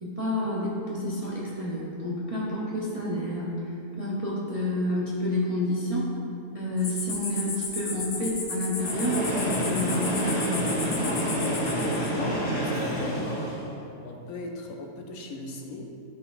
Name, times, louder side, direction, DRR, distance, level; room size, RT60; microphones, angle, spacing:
voice 1, 0.0-3.5 4.0-6.1 6.5-10.8, left 1 dB, 35° right, -7 dB, 0.6 m, -29 dB
sound 1, 6.8-12.1, left 4 dB, 50° left, 0.7 m, -34 dB
Train, 8.7-13.8, equal, 20° left, 1.1 m, -28 dB
voice 2, 11.4-13.4 14.0-15.9, left 2 dB, 65° left, 1 dB, 1.1 m, -39 dB
11.0 x 4.1 x 2.5 m, 2.7 s
omnidirectional pair, 1.7 m